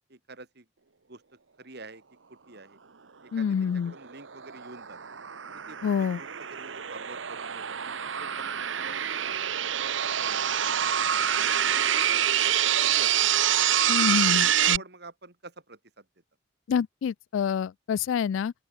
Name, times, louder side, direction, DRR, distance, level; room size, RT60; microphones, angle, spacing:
voice 1, 0.1-0.6 1.1-1.2 1.6-2.0 2.5-2.8 3.2-5.0 5.5-9.2 9.7-11.7 12.0-13.4 14.0-14.3 14.6-16.0, right 3 dB, 55° right, 2.9 m, -48 dB
voice 2, 3.3-3.9 5.8-6.2 13.9-14.8 16.7-18.5, left 7 dB, 85° left, 0.3 m, -27 dB
sound 1, 3.9-14.8, right 10 dB, 80° right, 1.1 m, -26 dB
open air
head